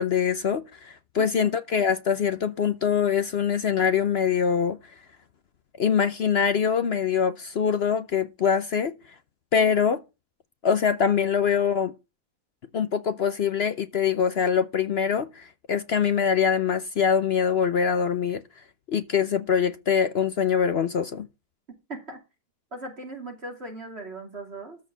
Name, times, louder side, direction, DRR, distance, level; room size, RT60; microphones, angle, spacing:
voice 1, 0.0-4.8 5.8-8.9 9.5-10.0 10.6-11.9 12.7-18.4 18.9-21.3, left 7 dB, 55° left, 0.7 m, -24 dB
voice 2, 22.7-24.8, right 2 dB, 40° right, 2.8 m, -38 dB
13.5 x 4.5 x 7.3 m
omnidirectional pair, 1.8 m